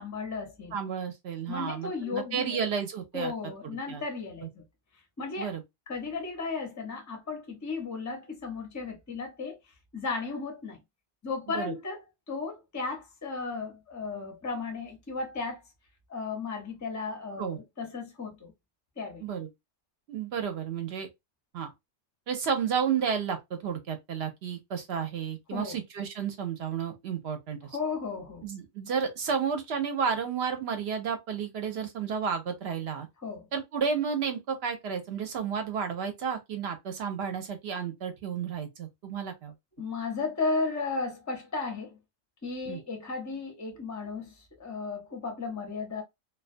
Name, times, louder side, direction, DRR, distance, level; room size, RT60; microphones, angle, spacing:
voice 1, 0.0-0.8 1.5-2.6 3.1-4.6 5.2-5.6 5.9-9.6 9.9-10.8 11.2-15.6 16.1-18.5 19.0-19.3 25.5-25.8 27.7-28.5 33.2-33.5 39.8-42.0 42.4-46.0, left 4 dB, 20° left, 0.5 m, -35 dB
voice 2, 0.7-3.3 3.6-4.0 4.4-4.5 5.4-5.6 11.5-11.7 17.4-17.6 19.2-19.5 20.1-21.1 21.5-21.7 22.3-27.6 28.4-33.1 33.5-39.5 42.7-42.8, right 7 dB, 65° right, 0.8 m, -32 dB
2.3 x 2.3 x 2.5 m
omnidirectional pair, 1.3 m